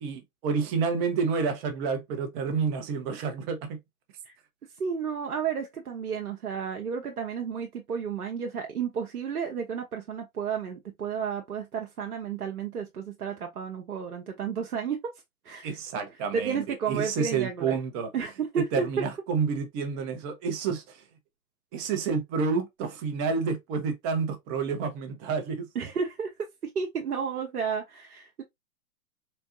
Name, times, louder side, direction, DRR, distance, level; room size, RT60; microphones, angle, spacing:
voice 1, 0.0-3.8 15.6-18.1 18.7-21.0 21.7-25.7, right 5 dB, 25° right, 0.9 m, -29 dB
voice 2, 4.8-15.0 15.4-15.8 16.3-17.8 18.1-19.0 25.7-26.3 26.6-28.4, right 7 dB, 85° right, 0.9 m, -32 dB
4.3 x 2.4 x 2.6 m
hypercardioid pair, 125°, 44 cm